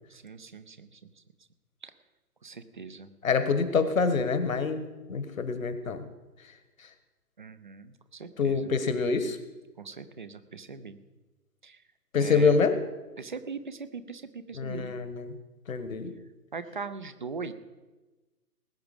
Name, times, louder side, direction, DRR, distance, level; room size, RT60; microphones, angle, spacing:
voice 1, 0.1-1.0 1.8-1.9 2.4-3.1 7.4-8.7 9.8-11.0 11.6-11.8 12.2-12.6 13.2-14.9 16.5-17.5, right 5 dB, 30° right, 12 dB, 0.6 m, -40 dB
voice 2, 3.2-4.8 5.1-6.1 8.4-9.4 12.1-12.8 14.5-15.3 15.7-16.1, left 5 dB, 55° left, 10 dB, 1.5 m, -26 dB
19.5 x 8.6 x 5.2 m, 1.2 s
figure-of-eight pair, 135°, 48 cm